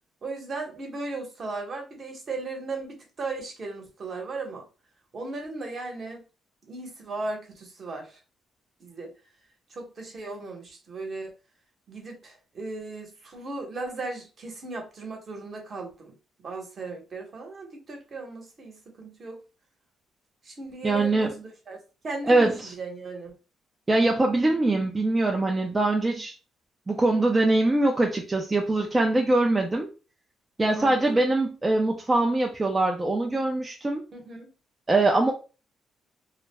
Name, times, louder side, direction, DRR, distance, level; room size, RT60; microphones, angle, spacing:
voice 1, 0.2-4.6 5.1-6.2 6.6-8.2 8.8-9.1 9.7-11.3 11.9-19.4 20.4-21.8 22.0-23.4 30.7-31.2 34.1-34.5, right 3 dB, 45° right, 1.0 m, -37 dB
voice 2, 20.8-21.3 22.3-22.7 23.9-26.3 26.9-29.9 30.6-34.0 34.9-35.3, right 2 dB, 20° right, 0.4 m, -23 dB
2.3 x 2.1 x 3.2 m
cardioid pair, 90°, 0 cm